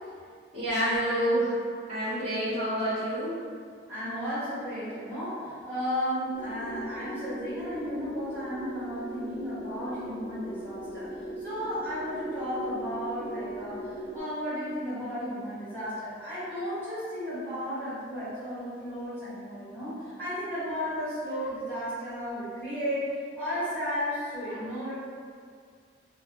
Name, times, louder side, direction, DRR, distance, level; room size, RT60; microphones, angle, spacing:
voice 1, 0.5-1.6 1.9-3.3, equal, 45° right, -14 dB, 1.1 m, -28 dB
voice 2, 3.9-11.1 11.4-23.0 23.4-24.9, equal, 10° left, -15 dB, 1.3 m, -34 dB
sound 1, 6.3-14.2, right 1 dB, 70° right, 0.8 m, -39 dB
2.8 x 2.1 x 2.2 m, 2.1 s
head